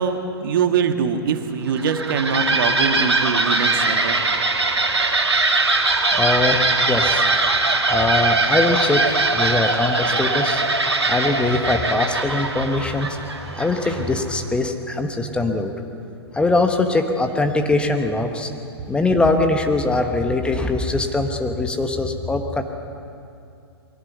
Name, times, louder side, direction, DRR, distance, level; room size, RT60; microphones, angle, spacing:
voice 1, 0.0-4.2, right 6 dB, 55° right, 7 dB, 1.6 m, -23 dB
sound 1, 1.7-14.2, right 3 dB, 85° right, 2.2 m, -21 dB
voice 2, 6.1-7.2 7.9-10.6 11.1-13.2 13.5-15.7 16.3-18.5 18.9-22.6, left 2 dB, 5° left, 5 dB, 1.1 m, -22 dB
22.0 x 17.5 x 8.1 m, 2.5 s
figure-of-eight pair, 115°, 14 cm